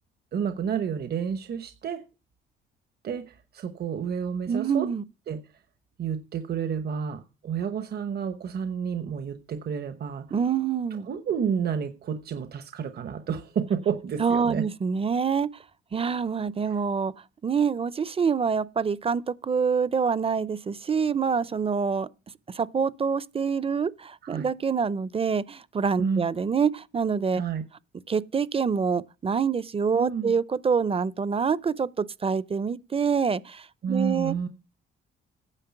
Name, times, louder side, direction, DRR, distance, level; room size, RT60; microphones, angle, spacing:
voice 1, 0.3-2.0 3.0-4.9 5.3-5.4 6.0-10.2 11.1-14.7 24.2-24.5 26.0-26.3 27.3-27.6 29.9-30.3 33.8-34.5, right 7 dB, 55° right, 1.0 m, -30 dB
voice 2, 4.5-5.0 10.3-11.1 14.2-15.5 15.9-17.1 17.4-22.1 22.5-27.4 28.1-34.3, right 6 dB, 30° right, 0.6 m, -26 dB
9.9 x 7.2 x 5.9 m
cardioid pair, 90°, 20 cm